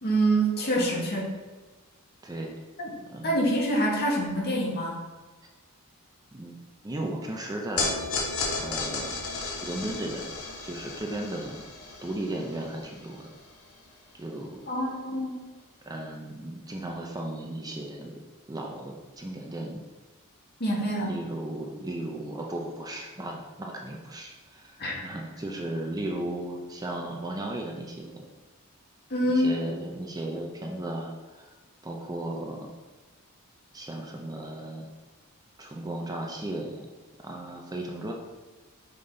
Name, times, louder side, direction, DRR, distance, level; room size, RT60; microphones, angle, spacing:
voice 1, 0.0-1.3 2.8-2.9 3.2-5.0 14.7-15.4 20.6-21.1 24.8-25.0 29.1-29.6, right 1 dB, 45° left, -3 dB, 1.8 m, -26 dB
voice 2, 0.8-1.1 2.2-2.6 3.1-3.4 6.3-6.6 6.8-8.3 8.6-9.2 9.6-10.3 10.6-11.7 12.0-13.3 14.1-14.6 15.9-18.1 18.5-19.8 21.0-24.8 25.0-28.2 29.3-31.5 31.8-32.7 33.7-34.9 35.6-36.9 37.2-38.1, right 1 dB, 15° right, 0 dB, 0.5 m, -35 dB
sound 1, 7.8-14.2, left 3 dB, 75° left, 1.8 m, -34 dB
5.6 x 5.1 x 3.9 m, 1.3 s
head